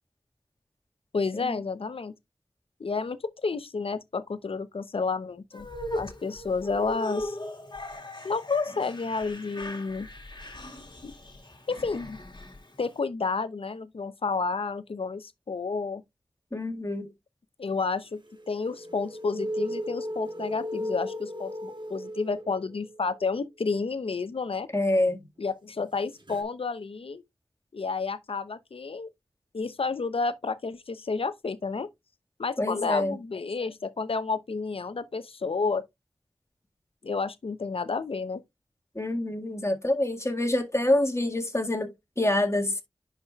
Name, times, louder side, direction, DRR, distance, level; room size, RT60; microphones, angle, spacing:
voice 1, 1.1-2.1 2.8-5.7 6.0-7.4 8.2-10.1 11.0-11.1 11.7-12.2 12.8-16.0 17.6-18.2 18.5-24.7 25.4-27.2 27.7-29.1 29.5-31.9 32.4-35.8 37.0-38.4, left 4 dB, 80° left, 0.7 m, -30 dB
sound 1, 5.5-12.9, left 1 dB, 50° left, 1.9 m, -38 dB
voice 2, 16.5-17.1 24.7-25.2 32.6-33.2 39.0-42.8, left 1 dB, 30° left, 1.8 m, -26 dB
sound 2, 18.3-23.0 26.3-26.4, equal, 55° right, 1.3 m, -35 dB
10.5 x 4.9 x 2.3 m
cardioid pair, 40°, 10 cm